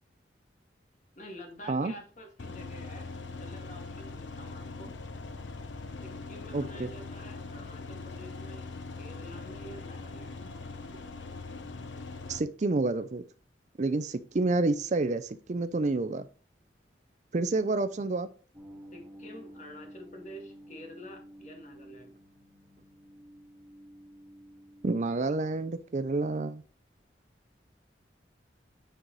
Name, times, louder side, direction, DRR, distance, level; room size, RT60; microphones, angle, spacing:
voice 1, 1.2-3.1 3.4-5.0 6.0-10.5 18.9-22.1, equal, 40° left, 3 dB, 1.9 m, -48 dB
sound 1, 2.4-12.4, left 3 dB, 85° left, 0.9 m, -41 dB
voice 2, 6.5-6.9 12.3-13.2 13.8-16.2 17.3-18.3 24.8-26.6, right 3 dB, 40° right, 12 dB, 0.4 m, -29 dB
sound 2, 18.5-25.1, equal, 10° right, 1.6 m, -51 dB
9.1 x 4.7 x 4.0 m, 0.40 s
head